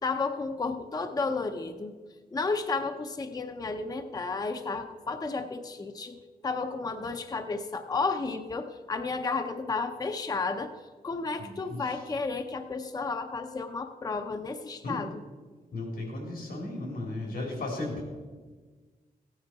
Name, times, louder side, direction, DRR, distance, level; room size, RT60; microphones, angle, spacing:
voice 1, 0.0-2.0 2.3-10.7 11.0-15.1, left 4 dB, 25° left, 7 dB, 0.6 m, -32 dB
voice 2, 11.4-12.0 14.8-15.0 15.7-18.0, left 2 dB, 90° left, 0 dB, 3.9 m, -35 dB
15.5 x 9.5 x 4.7 m, 1.4 s
wide cardioid pair, 160°, 16 cm